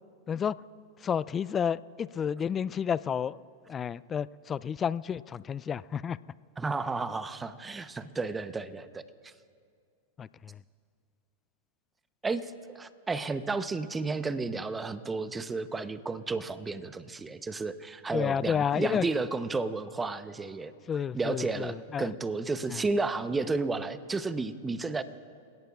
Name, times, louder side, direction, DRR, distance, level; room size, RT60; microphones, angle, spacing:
voice 1, 1.0-3.4 3.7-6.2 10.2-10.3 18.1-19.0 20.9-22.1 22.7-22.8, left 7 dB, 25° left, 19 dB, 0.3 m, -30 dB
voice 2, 6.6-9.3 12.2-20.7 21.1-25.0, right 3 dB, 15° right, 12 dB, 0.8 m, -32 dB
29.5 x 17.5 x 2.4 m, 2.2 s
hypercardioid pair, 105°, 0 cm